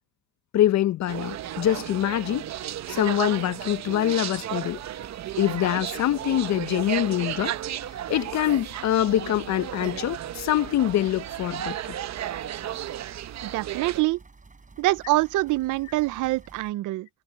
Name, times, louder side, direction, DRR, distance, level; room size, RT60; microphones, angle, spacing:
voice 1, 0.5-2.5 2.9-4.8 5.4-7.6 8.1-11.7, left 12 dB, 65° left, 0.7 m, -24 dB
sound 1, 1.1-14.0, right 12 dB, 65° right, 0.9 m, -34 dB
sound 2, 4.6-16.7, right 3 dB, 25° right, 7.8 m, -52 dB
voice 2, 13.4-14.2 14.8-17.1, right 18 dB, 85° right, 0.6 m, -25 dB
cardioid pair, 90°, 30 cm